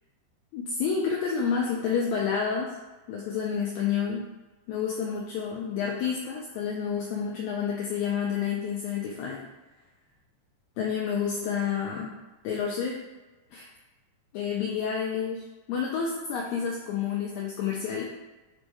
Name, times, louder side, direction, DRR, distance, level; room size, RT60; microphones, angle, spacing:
voice 1, 0.5-2.8 3.1-4.2 4.7-9.4 10.8-12.1 12.4-13.0 13.5-13.7 14.3-18.0, left 6 dB, 85° left, -2 dB, 1.6 m, -29 dB
5.3 x 2.1 x 4.6 m, 1.1 s
omnidirectional pair, 3.8 m